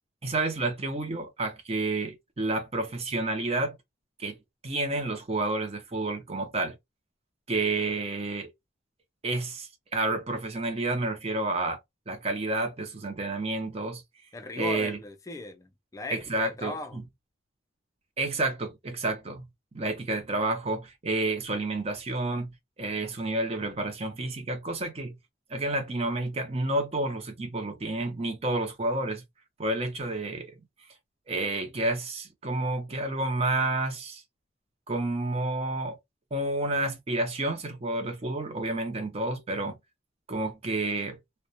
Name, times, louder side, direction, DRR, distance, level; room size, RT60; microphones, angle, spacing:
voice 1, 0.2-3.8 4.2-4.4 4.6-6.8 7.5-8.5 9.2-11.8 12.1-14.0 14.6-15.0 16.1-17.0 18.2-19.5 19.7-22.5 22.8-25.2 25.5-29.2 29.6-30.5 31.3-34.2 34.9-36.0 36.3-39.8 40.3-41.2, right 2 dB, 30° right, 0.6 m, -30 dB
voice 2, 14.3-17.0, left 2 dB, 15° left, 0.4 m, -38 dB
2.3 x 2.1 x 2.6 m
head